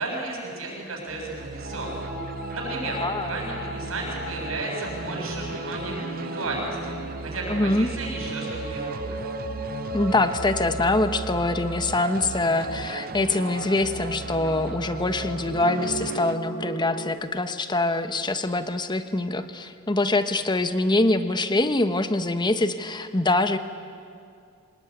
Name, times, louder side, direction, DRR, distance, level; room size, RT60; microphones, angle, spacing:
voice 1, 0.0-2.1 2.5-9.2, right 2 dB, 75° right, 0 dB, 6.9 m, -33 dB
sound 1, 1.1-16.4, right 4 dB, 45° right, 0.5 m, -37 dB
sound 2, 1.6-17.1, equal, 65° left, 5.6 m, -36 dB
voice 2, 2.9-3.3 7.5-7.9 9.9-23.6, left 2 dB, 20° left, 9 dB, 1.1 m, -24 dB
25.0 x 20.0 x 9.6 m, 2.3 s
head